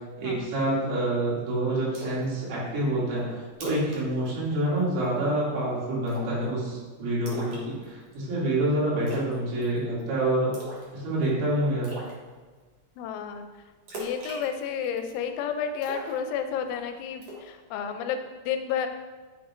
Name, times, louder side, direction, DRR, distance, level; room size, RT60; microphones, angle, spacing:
voice 1, 0.2-10.5 10.9-11.9, right 1 dB, 90° right, -7 dB, 5.2 m, -27 dB
Splash splatter, 1.9-2.3 2.7-2.8 3.2-3.3 3.5-4.0 4.3-4.5 4.8-5.2 6.1-6.4 7.3-8.1 9.1-9.4 9.6-10.0 10.5-10.9 11.2-11.3 11.8-12.1 13.9-15.1 15.8-16.7 17.2-17.5, right 1 dB, 50° right, 2.0 m, -39 dB
voice 2, 13.0-13.5 13.9-18.9, left 7 dB, 85° left, 7 dB, 2.9 m, -31 dB
10.0 x 7.8 x 2.6 m, 1.4 s
omnidirectional pair, 5.6 m